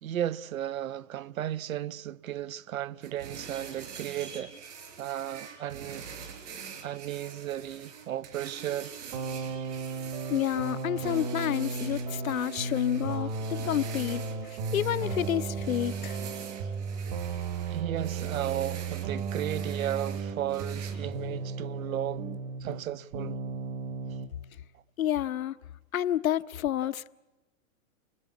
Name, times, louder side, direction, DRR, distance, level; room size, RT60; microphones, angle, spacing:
voice 1, 0.0-6.1 6.8-9.0 17.7-22.3 22.6-23.4, right 11 dB, 80° right, 0.9 m, -35 dB
sound 1, 3.0-20.9, right 6 dB, 60° right, 5.9 m, -45 dB
sound 2, 9.1-22.9 23.1-24.3, right 4 dB, 30° right, 1.2 m, -35 dB
voice 2, 10.3-16.2 25.0-25.6 25.9-27.1, left 11 dB, 85° left, 1.0 m, -29 dB
29.5 x 20.5 x 8.3 m
hypercardioid pair, 165°, 40 cm